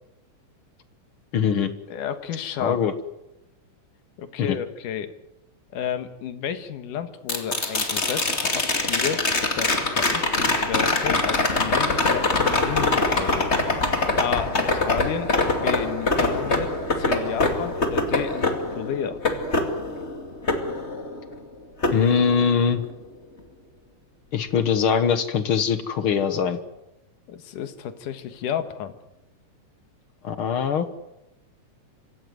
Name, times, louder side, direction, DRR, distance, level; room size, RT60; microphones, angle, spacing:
voice 1, 1.3-1.7 2.6-2.9 4.4-4.6 21.9-22.8 24.3-26.6 30.2-30.9, left 7 dB, 55° left, 11 dB, 1.7 m, -22 dB
voice 2, 1.9-2.9 4.2-5.1 5.7-13.5 14.2-19.2 27.3-28.9, left 8 dB, 80° left, 9 dB, 3.1 m, -32 dB
sound 1, 7.3-21.4 21.8-22.9 25.1-25.2, left 2 dB, 20° left, 2.4 m, -24 dB
25.5 x 16.0 x 9.5 m, 0.93 s
omnidirectional pair, 3.6 m